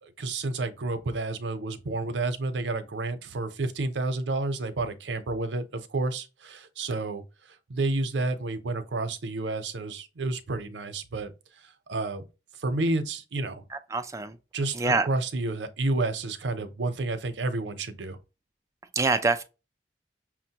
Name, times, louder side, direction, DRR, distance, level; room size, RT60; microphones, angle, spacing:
voice 1, 0.0-12.2 12.6-13.6 14.5-18.2, right 2 dB, 90° right, 0.6 m, -30 dB
voice 2, 13.7-14.4 14.7-15.1 18.9-19.4, right 3 dB, 15° right, 0.4 m, -25 dB
5.9 x 2.1 x 2.8 m
head